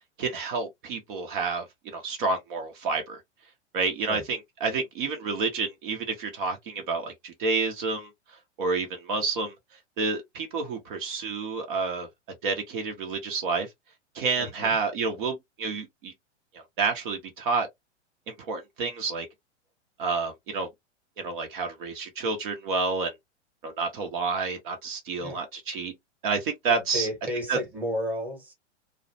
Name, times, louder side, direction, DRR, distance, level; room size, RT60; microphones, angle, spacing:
voice 1, 0.2-3.2 3.7-8.1 8.6-9.5 10.0-12.1 12.4-13.7 14.1-16.1 16.5-17.7 18.3-19.3 20.0-20.7 21.2-23.1 23.6-25.9 26.2-27.1 27.5-27.6, right 4 dB, 45° right, 0.7 m, -29 dB
voice 2, 14.4-14.8 25.2-25.4 26.7-28.5, equal, 5° right, 1.0 m, -33 dB
2.4 x 2.0 x 2.7 m
figure-of-eight pair, 105°, 35 cm